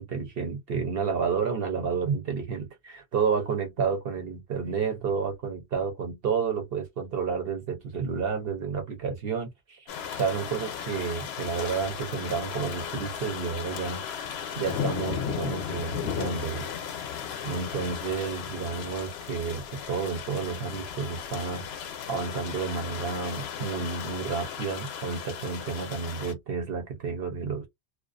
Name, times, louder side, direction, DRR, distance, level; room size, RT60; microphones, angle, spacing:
voice 1, 0.0-9.9 10.1-14.3 14.6-16.7 17.4-27.7, right 5 dB, 60° right, 0.9 m, -31 dB
sound 1, 9.9-26.3, left 8 dB, 70° left, 0.8 m, -36 dB
2.3 x 2.2 x 2.4 m
omnidirectional pair, 1.1 m